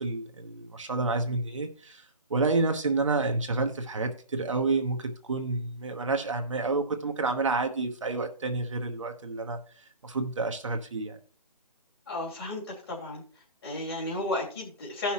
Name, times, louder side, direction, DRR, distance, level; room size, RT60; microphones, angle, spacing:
voice 1, 0.0-2.0 2.3-9.6 10.0-11.2, right 3 dB, 50° right, 0.9 m, -29 dB
voice 2, 12.1-13.2 13.6-15.1, left 2 dB, 35° left, 2.9 m, -33 dB
16.5 x 5.8 x 3.0 m
figure-of-eight pair, 160°, 21 cm